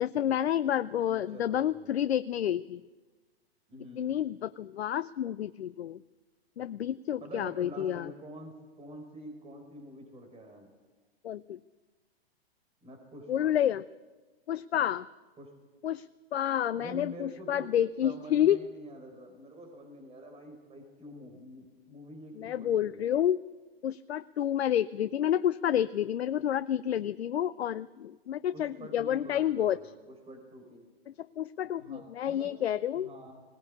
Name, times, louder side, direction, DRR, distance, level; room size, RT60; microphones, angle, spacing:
voice 1, 0.0-2.8 4.0-6.0 6.6-8.1 11.2-11.6 13.3-13.8 14.5-15.1 15.8-16.1 16.3-18.6 22.4-23.4 23.8-29.8 31.4-33.1, left 10 dB, 80° left, 14 dB, 0.6 m, -29 dB
voice 2, 1.0-1.9 3.7-4.2 7.2-10.7 12.8-13.5 15.4-15.5 16.7-17.7 18.0-23.1 28.5-30.8 31.8-32.5 32.9-33.4, right 1 dB, 20° right, 4 dB, 4.4 m, -47 dB
20.5 x 18.0 x 8.6 m, 1.3 s
hypercardioid pair, 115°, 31 cm